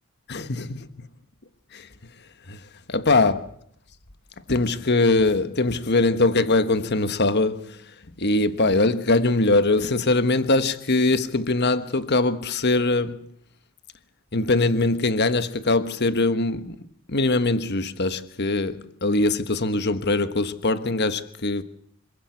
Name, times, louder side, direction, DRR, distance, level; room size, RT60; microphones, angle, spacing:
voice 1, 0.3-0.9 1.7-1.9 2.5-2.6 2.9-3.4 4.5-7.8 8.2-13.2 14.3-16.8 17.1-21.6, left 2 dB, 50° left, 1.4 m, -22 dB
26.5 x 15.5 x 8.4 m
head